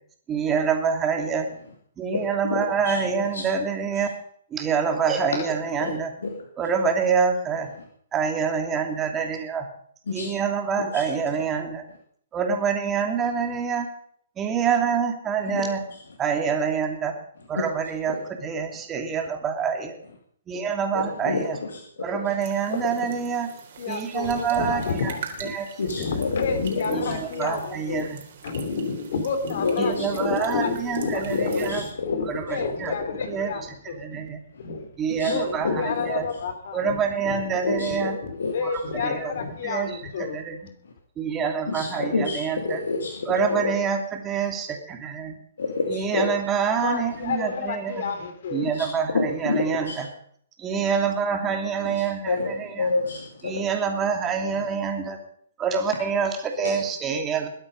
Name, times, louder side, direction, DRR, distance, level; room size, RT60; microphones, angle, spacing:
voice 1, 0.3-1.5 2.0-4.1 4.5-6.1 6.6-7.7 8.1-9.7 10.1-11.8 12.3-13.9 14.4-15.8 16.2-17.1 17.5-20.0 20.5-21.6 22.0-23.5 23.9-25.1 25.4-25.7 26.0-26.1 26.9-28.2 29.8-31.9 32.2-33.0 33.3-34.4 35.0-36.3 36.7-38.2 38.6-39.3 39.6-40.6 41.2-42.8 43.3-45.4 45.9-48.1 48.5-50.1 50.6-52.9 53.4-55.2 55.6-57.5, right 6 dB, 20° right, 4 dB, 2.8 m, -26 dB
voice 2, 2.1-2.6 2.9-3.0 3.3-3.4 5.8-5.9 10.1-10.3 10.9-11.0 15.5-15.6 20.9-21.4 25.8-27.1 29.6-30.1 31.3-32.2 33.2-33.4 35.2-35.3 35.6-36.2 37.6-38.1 38.4-38.5 39.1-39.2 41.7-43.1 43.5-43.7 45.6-46.3 48.8-48.9 49.1-50.0 52.3-52.5 52.8-53.5 56.6-56.7, left 4 dB, 80° left, 2 dB, 2.4 m, -27 dB
sound 1, 22.4-31.9, right 7 dB, 60° right, 4.0 m, -43 dB
voice 3, 23.8-25.5 25.9-28.1 28.4-33.6 33.9-34.2 34.6-34.9 35.1-36.8 37.2-37.3 37.8-38.0 38.5-40.4 46.8-48.7, left 5 dB, 60° left, 8 dB, 3.1 m, -30 dB
21.5 x 8.8 x 5.3 m, 0.63 s
hypercardioid pair, 135°, 0 cm